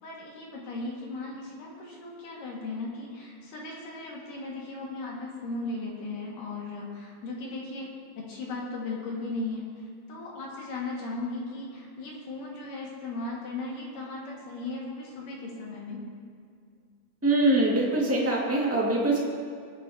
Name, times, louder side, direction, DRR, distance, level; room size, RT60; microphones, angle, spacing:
voice 1, 0.0-7.9 8.2-9.7 10.1-16.0, left 2 dB, 70° left, -3 dB, 3.4 m, -37 dB
voice 2, 17.2-19.2, right 2 dB, 15° right, -4 dB, 0.5 m, -23 dB
22.5 x 9.3 x 2.8 m, 2.2 s
omnidirectional pair, 4.0 m